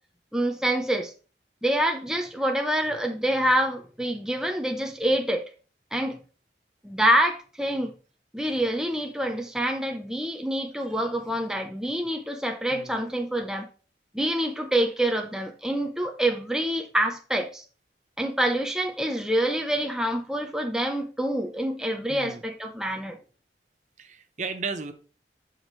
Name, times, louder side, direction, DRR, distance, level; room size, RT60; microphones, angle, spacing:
voice 1, 0.3-1.1 1.6-5.4 5.9-6.2 6.8-7.9 8.3-13.7 14.1-17.6 18.2-23.2, right 1 dB, 5° right, 0.8 m, -26 dB
voice 2, 22.1-22.4 24.0-24.9, right 4 dB, 40° right, 0.9 m, -34 dB
11.5 x 5.0 x 3.2 m
head